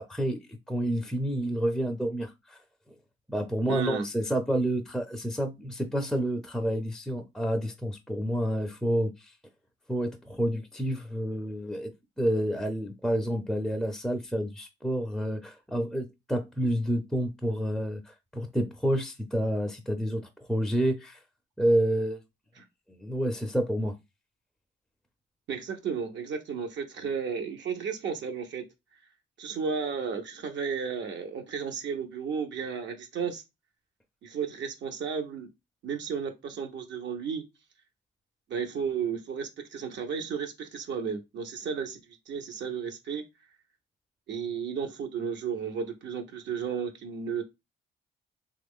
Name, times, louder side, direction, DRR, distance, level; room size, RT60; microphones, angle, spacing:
voice 1, 0.0-2.6 3.3-9.3 9.9-11.9 12.2-21.2 21.6-22.2 22.9-23.9, equal, ahead, 0.5 m, -29 dB
voice 2, 3.7-4.1 22.6-22.7 25.5-28.6 29.4-33.4 34.2-35.5 35.8-37.4 38.5-42.0 42.3-43.2 44.3-47.4, right 6 dB, 65° right, 0.7 m, -33 dB
3.0 x 2.4 x 3.5 m
cardioid pair, 90°, 20 cm